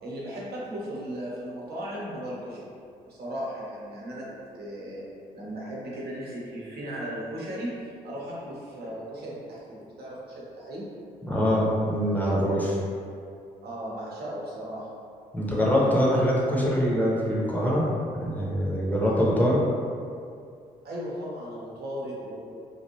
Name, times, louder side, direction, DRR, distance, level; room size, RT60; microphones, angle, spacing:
voice 1, 0.0-2.7 3.1-4.3 4.5-5.1 5.3-7.8 8.0-10.9 13.6-14.9 20.8-22.5, equal, 55° right, -5 dB, 0.9 m, -36 dB
voice 2, 11.3-12.8 15.3-17.9 18.2-19.6, equal, 10° left, -5 dB, 0.9 m, -23 dB
3.2 x 2.5 x 2.8 m, 2.3 s
figure-of-eight pair, 40°, 20 cm